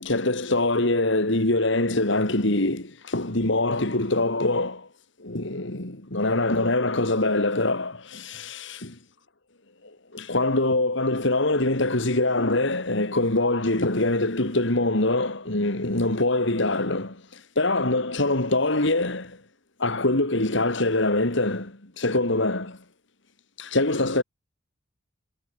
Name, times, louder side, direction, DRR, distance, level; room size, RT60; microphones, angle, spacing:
voice 1, 0.0-4.9 5.2-9.0 9.8-19.4 19.8-22.8 23.6-24.2, left 2 dB, 65° left, 2.9 m, -24 dB
head